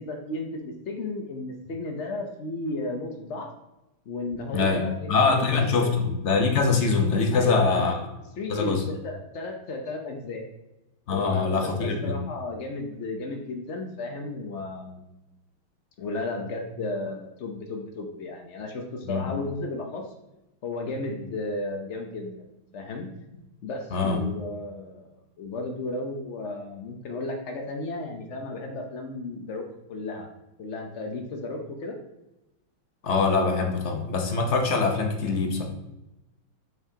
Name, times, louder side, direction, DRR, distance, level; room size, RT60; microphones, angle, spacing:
voice 1, 0.0-3.5 4.1-6.0 7.3-7.8 8.4-10.4 11.1-15.1 16.0-20.1 20.6-22.5 22.7-23.1 23.6-30.3 30.6-31.9, left 2 dB, 80° left, 3 dB, 0.6 m, -34 dB
voice 2, 4.5-8.1 8.5-8.9 11.1-12.2 19.0-19.2 23.9-24.2 33.0-35.6, left 4 dB, 50° left, 4 dB, 0.8 m, -23 dB
7.3 x 5.9 x 2.8 m, 0.95 s
omnidirectional pair, 2.4 m